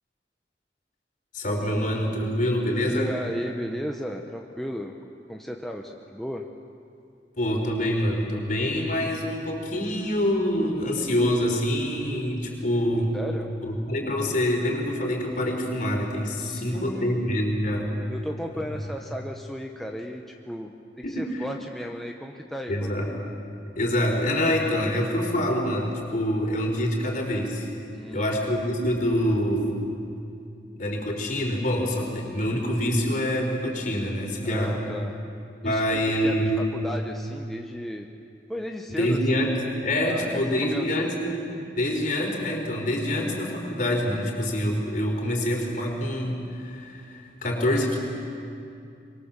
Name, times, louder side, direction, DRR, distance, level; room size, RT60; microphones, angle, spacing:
voice 1, 1.3-3.1 7.4-13.1 13.6-18.0 21.0-21.3 22.7-23.1 23.8-27.7 28.1-29.8 30.8-34.8 35.6-36.6 38.9-39.5 39.8-41.4 41.8-48.0, equal, 45° left, 1 dB, 4.2 m, -26 dB
voice 2, 2.8-5.0 5.3-6.4 13.1-13.5 16.4-17.2 18.1-22.9 27.9-28.4 34.4-35.2 35.6-38.1 38.5-39.2 40.0-41.1, equal, ahead, 1 dB, 0.9 m, -35 dB
25.0 x 22.5 x 7.3 m, 2.5 s
head